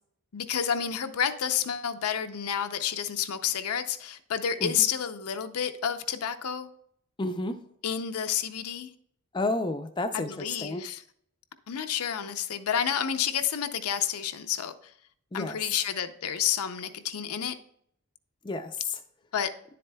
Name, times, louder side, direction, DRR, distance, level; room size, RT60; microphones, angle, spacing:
voice 1, 0.3-6.7 7.8-8.9 10.1-11.0 11.7-14.9 15.3-17.6 19.3-19.5, left 8 dB, 85° left, 9 dB, 0.5 m, -30 dB
voice 2, 7.2-7.6 9.3-10.8 15.3-15.6 18.4-19.0, left 2 dB, 20° left, 7 dB, 0.4 m, -31 dB
10.5 x 7.6 x 2.2 m, 0.68 s
head